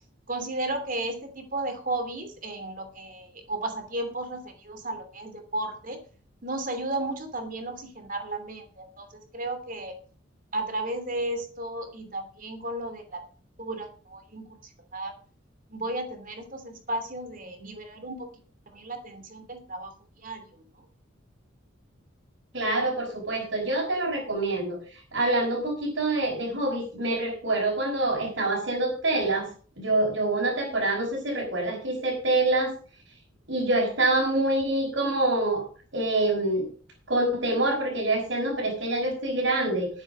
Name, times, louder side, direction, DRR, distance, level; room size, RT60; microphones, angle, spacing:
voice 1, 0.3-6.0 6.4-10.0 10.5-13.2 13.6-14.5 14.9-15.1 15.7-18.3 18.7-19.9 20.2-20.4, right 2 dB, 45° right, 7 dB, 2.8 m, -34 dB
voice 2, 22.5-29.5 29.8-32.8 33.5-35.7 35.9-36.7 37.1-39.9, right 2 dB, 65° right, -3 dB, 5.4 m, -26 dB
11.5 x 9.7 x 5.4 m, 0.41 s
head